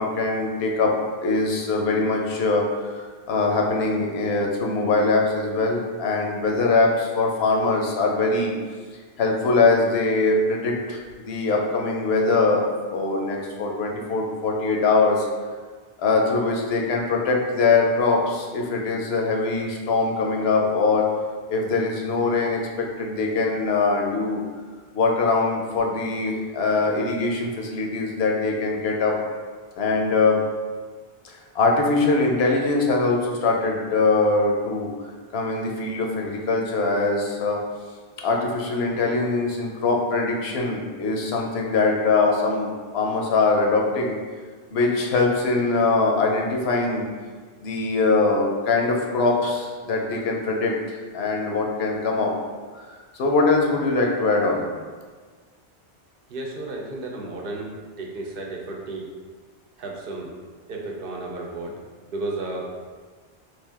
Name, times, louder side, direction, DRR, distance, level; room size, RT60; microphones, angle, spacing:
voice 1, 0.0-8.5 9.2-15.3 16.0-21.1 21.5-24.4 24.9-29.2 29.8-30.4 31.2-34.9 35.3-37.6 38.2-44.2 44.7-47.1 47.6-52.3 52.7-52.8 53.1-54.6, left 3 dB, 80° left, 0 dB, 0.9 m, -22 dB
voice 2, 56.3-59.1 59.8-60.3 60.7-61.8 62.1-62.7, right 2 dB, 65° right, -1 dB, 0.7 m, -33 dB
3.3 x 2.5 x 3.4 m, 1.5 s
omnidirectional pair, 1.0 m